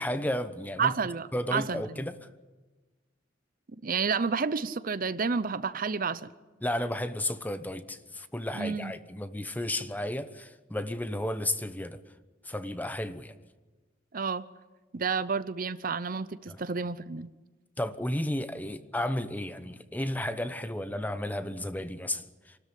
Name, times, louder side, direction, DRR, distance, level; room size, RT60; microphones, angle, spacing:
voice 1, 0.0-0.9 1.3-2.3 6.6-12.0 12.4-13.3 16.5-16.6 17.8-22.6, left 1 dB, 10° left, 0.9 m, -33 dB
voice 2, 0.8-1.8 3.8-6.3 8.5-8.9 14.1-14.4 14.9-17.3, right 5 dB, 45° right, 0.7 m, -30 dB
27.5 x 13.0 x 9.9 m
head